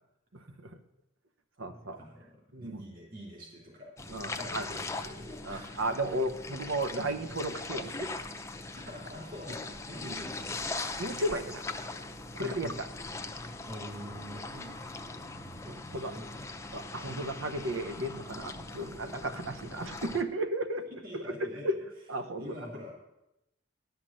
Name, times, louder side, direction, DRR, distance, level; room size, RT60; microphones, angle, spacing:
voice 1, 0.3-0.7 1.6-2.0 2.5-2.8 4.1-4.7 5.4-8.2 10.0-10.2 11.0-11.6 12.3-12.7 14.5-14.7 15.7-16.1 16.7-20.8 21.6-21.8 22.1-22.4, right 1 dB, 85° right, 9 dB, 1.0 m, -34 dB
voice 2, 1.7-3.9 4.3-5.9 8.8-10.7 12.4-12.8 13.7-14.7 15.0-16.7 20.8-21.8 22.3-23.0, equal, 50° right, -4 dB, 3.2 m, -46 dB
sound 1, 4.0-20.2, left 3 dB, 15° left, 0.6 m, -41 dB
11.5 x 6.0 x 7.5 m, 0.90 s
head